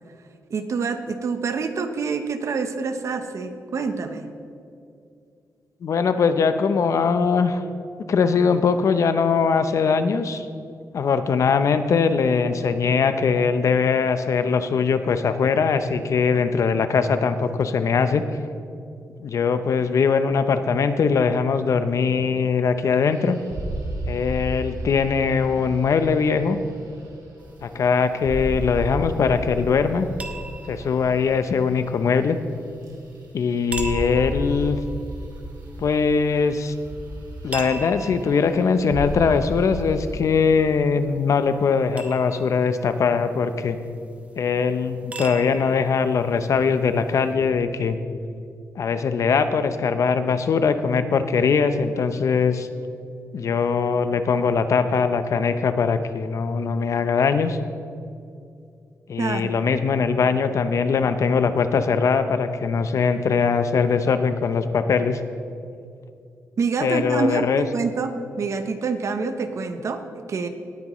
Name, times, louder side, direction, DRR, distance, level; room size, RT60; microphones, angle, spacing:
voice 1, 0.5-4.3 59.2-59.5 66.6-70.5, right 4 dB, 55° right, 8 dB, 0.8 m, -27 dB
voice 2, 5.8-7.6 8.1-10.5 10.9-18.2 19.2-23.4 24.1-26.6 27.6-30.1 30.7-32.4 33.3-34.8 35.8-36.7 37.4-43.8 44.4-48.0 48.8-52.7 53.3-57.6 59.1-65.2 66.8-67.6, left 5 dB, 60° left, 10 dB, 0.6 m, -21 dB
sound 1, 23.1-27.9 28.2-32.5 32.8-33.3 33.6-40.2, right 1 dB, 75° right, 1.9 m, -34 dB
sound 2, 27.4-47.3, right 2 dB, 25° right, 0.9 m, -42 dB
17.5 x 9.5 x 3.1 m, 2.5 s
wide cardioid pair, 115°, 6 cm